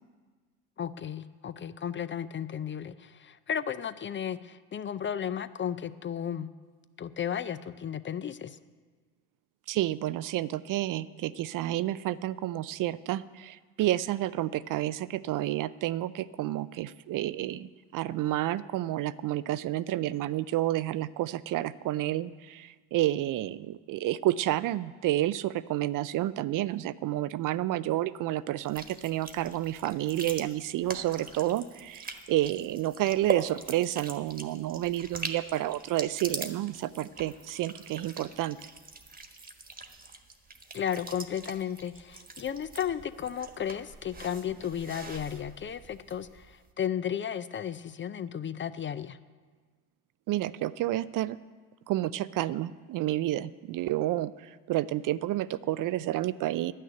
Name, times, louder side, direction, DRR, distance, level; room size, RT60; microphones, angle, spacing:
voice 1, 0.8-6.5 7.0-8.6 40.7-49.2, left 9 dB, 30° left, 14 dB, 0.5 m, -34 dB
voice 2, 9.7-38.6 50.3-51.4 51.9-56.7, right 14 dB, 50° right, 17 dB, 0.5 m, -30 dB
sound 1, 28.6-46.5, right 3 dB, 20° right, 1.3 m, -42 dB
11.0 x 6.6 x 8.8 m, 1.5 s
supercardioid pair, 75°, 42 cm